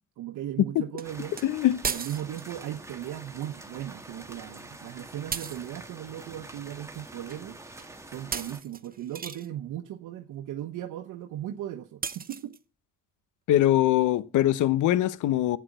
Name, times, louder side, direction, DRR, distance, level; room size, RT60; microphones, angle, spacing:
voice 1, 0.2-1.3 1.9-7.6 8.1-12.5, right 12 dB, 85° right, 1.1 m, -37 dB
sound 1, 1.0-8.6, right 2 dB, 10° right, 1.8 m, -46 dB
sound 2, 1.0-1.1 1.4-1.5 1.8-2.6 5.3-5.7 7.3-7.4 7.8-7.9 8.3-9.5 12.0-12.6, right 6 dB, 30° right, 0.8 m, -35 dB
voice 2, 1.4-1.8 13.5-15.6, left 13 dB, 80° left, 0.8 m, -22 dB
11.5 x 8.7 x 7.9 m
cardioid pair, 90°, 30 cm